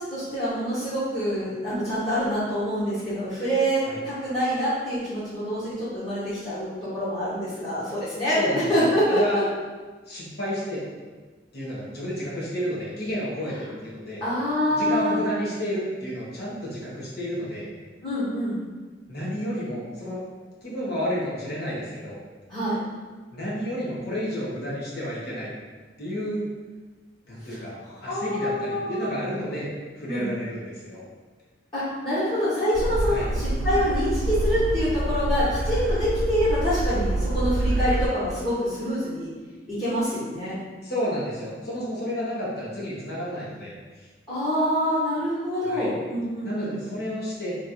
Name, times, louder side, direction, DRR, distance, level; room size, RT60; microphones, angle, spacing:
voice 1, 0.0-8.4 8.7-9.4 14.2-15.2 18.0-18.6 22.5-22.8 28.0-29.1 30.0-30.3 31.7-39.3 39.7-40.6 44.3-46.9, equal, 30° left, -14 dB, 1.2 m, -26 dB
voice 2, 8.3-9.5 10.1-10.8 11.5-14.2 14.7-17.7 19.1-20.2 20.6-22.2 23.3-25.5 26.0-26.5 27.3-29.7 30.0-31.0 33.0-33.3 40.8-43.7 44.0-44.1 45.6-45.9 46.4-47.6, equal, 60° left, -6 dB, 1.1 m, -31 dB
sound 1, 32.7-38.1, right 1 dB, 60° right, 0.4 m, -26 dB
3.2 x 2.5 x 4.2 m, 1.3 s
head